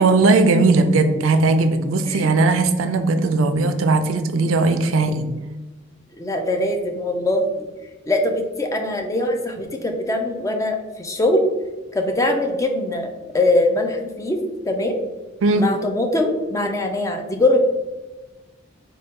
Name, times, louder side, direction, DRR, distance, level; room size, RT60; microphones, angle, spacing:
voice 1, 0.0-5.3 15.4-15.7, right 3 dB, 75° right, 9 dB, 0.4 m, -18 dB
voice 2, 6.2-7.6 8.1-11.4 11.9-14.4 14.7-15.0 15.5-17.6, left 1 dB, 15° left, 3 dB, 0.4 m, -22 dB
4.2 x 2.2 x 3.5 m, 1.2 s
head